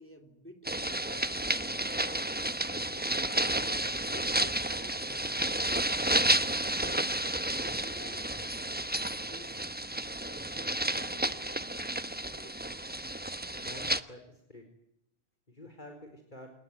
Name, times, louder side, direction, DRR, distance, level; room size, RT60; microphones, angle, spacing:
voice 1, 0.0-2.3 3.3-5.7 7.8-9.8 10.2-11.7 12.2-12.6, equal, 10° left, 7 dB, 3.7 m, -53 dB
sound 1, 0.6-14.0, right 1 dB, 10° right, 1.0 m, -31 dB
voice 2, 13.5-14.6 15.5-16.5, left 1 dB, 50° left, 4 dB, 4.5 m, -49 dB
28.5 x 19.0 x 9.8 m, 0.81 s
omnidirectional pair, 1.0 m